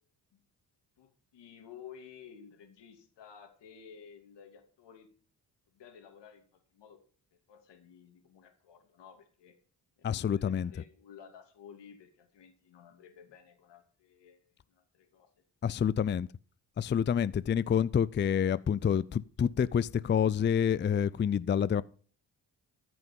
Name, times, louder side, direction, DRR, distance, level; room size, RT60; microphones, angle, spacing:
voice 1, 1.0-5.1 5.7-6.4 6.7-7.0 7.3-9.6 10.0-15.3, left 7 dB, 80° left, 2.8 m, -53 dB
voice 2, 10.0-10.7 15.6-16.3 16.8-21.8, left 8 dB, 30° left, 0.4 m, -28 dB
14.0 x 6.2 x 5.3 m
cardioid pair, 75°, 41 cm